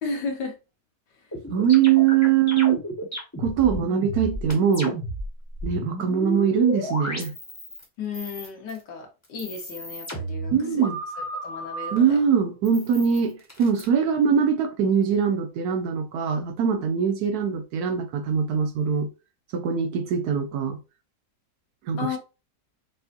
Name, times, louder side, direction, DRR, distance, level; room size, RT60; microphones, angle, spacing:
voice 1, 0.0-0.5 8.0-10.5 11.4-12.2 22.0-22.2, left 4 dB, 85° left, 1.8 m, -33 dB
sound 1, 1.3-7.8 8.1-8.8 9.2-12.0 12.6-13.8, equal, 10° left, 1.1 m, -33 dB
voice 2, 1.5-2.8 3.4-5.0 5.6-7.3 10.5-11.0 11.9-19.1 19.5-20.8 21.9-22.2, right 7 dB, 70° right, 1.1 m, -22 dB
5.5 x 2.6 x 2.6 m
omnidirectional pair, 1.8 m